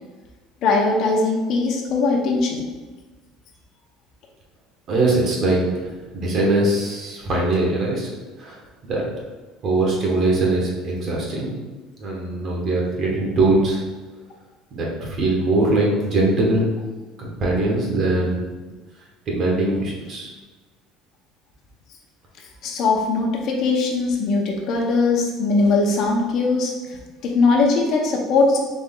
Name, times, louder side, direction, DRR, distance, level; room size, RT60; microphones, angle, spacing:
voice 1, 0.6-2.6 22.6-28.6, left 3 dB, 55° left, 0 dB, 0.8 m, -20 dB
voice 2, 4.9-8.1 8.4-9.0 9.6-11.5 12.0-13.8 14.7-16.7 17.2-18.4 19.3-20.3, right 2 dB, 40° right, -2 dB, 1.3 m, -21 dB
4.2 x 3.2 x 3.7 m, 1.3 s
cardioid pair, 145°, 0 cm